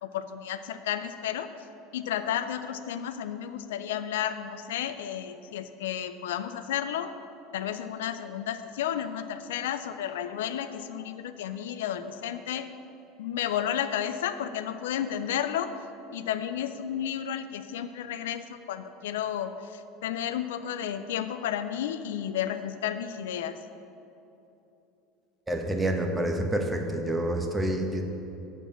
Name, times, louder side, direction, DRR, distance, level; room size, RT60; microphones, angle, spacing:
voice 1, 0.0-1.5 1.9-7.1 7.5-12.7 13.2-15.7 16.1-23.6, left 10 dB, 70° left, 10 dB, 0.4 m, -32 dB
voice 2, 25.5-28.0, right 1 dB, 15° right, 4 dB, 1.2 m, -28 dB
7.3 x 6.9 x 7.1 m, 2.9 s
hypercardioid pair, 75°, 0 cm